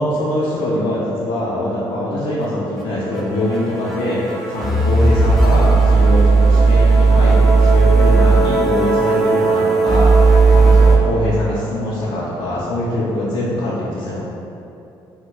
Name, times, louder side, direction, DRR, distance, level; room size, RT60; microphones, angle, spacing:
voice 1, 0.0-14.2, left 1 dB, 75° left, -8 dB, 0.5 m, -23 dB
sound 1, 2.4-2.5 2.8-2.9 3.1-11.0, right 3 dB, ahead, 0.5 m, -14 dB
3.1 x 2.1 x 3.1 m, 2.7 s
cardioid pair, 90°, 10 cm